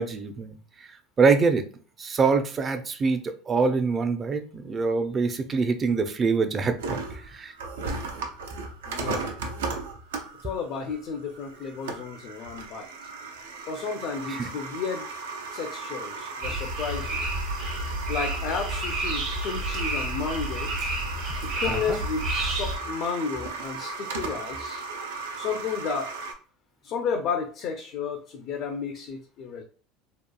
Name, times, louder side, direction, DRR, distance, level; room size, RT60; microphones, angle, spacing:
voice 1, 0.0-1.7 2.0-7.5 14.3-14.5 21.6-22.0, right 4 dB, 30° right, 8 dB, 0.4 m, -25 dB
sound 1, 6.8-26.3, right 4 dB, 90° right, 0.4 m, -36 dB
voice 2, 8.9-9.4 10.4-13.1 13.7-15.1 15.5-17.2 18.1-20.7 21.5-24.8 25.4-26.1 26.8-29.6, left 5 dB, 55° left, 3 dB, 0.4 m, -32 dB
sound 2, 16.4-22.8, right 1 dB, 65° right, 1.0 m, -30 dB
2.8 x 2.3 x 2.2 m, 0.40 s
supercardioid pair, 100°, 0 cm